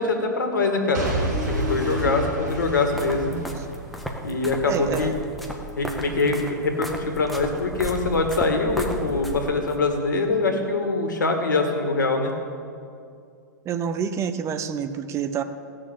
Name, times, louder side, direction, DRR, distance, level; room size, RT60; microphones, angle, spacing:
voice 1, 0.0-3.4 4.2-5.1 5.8-12.3, left 3 dB, 75° left, 4 dB, 2.1 m, -24 dB
Boom / Shatter / Crushing, 0.9-4.9 5.5-5.6, right 2 dB, 65° right, 3.1 m, -30 dB
sound 1, 1.3-3.0 3.5-3.8 4.1-4.6 4.9-5.3 5.9-6.0 8.5-8.6, left 10 dB, 30° left, 0.9 m, -35 dB
sound 2, 2.5-9.8, equal, ahead, 1.6 m, -35 dB
voice 2, 4.6-5.1 13.6-15.4, right 7 dB, 30° right, 10 dB, 0.8 m, -28 dB
17.0 x 6.8 x 7.2 m, 2.4 s
figure-of-eight pair, 100°, 10 cm